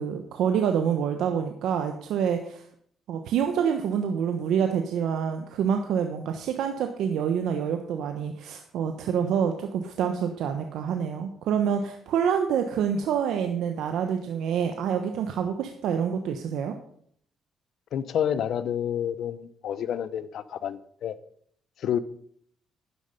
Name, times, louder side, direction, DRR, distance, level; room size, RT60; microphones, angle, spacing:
voice 1, 0.0-2.6 3.1-16.8, right 7 dB, 80° right, 5 dB, 1.1 m, -27 dB
voice 2, 17.9-21.2 21.8-22.0, left 9 dB, 70° left, 15 dB, 0.8 m, -29 dB
11.5 x 10.0 x 5.4 m, 0.64 s
cardioid pair, 90°, 0 cm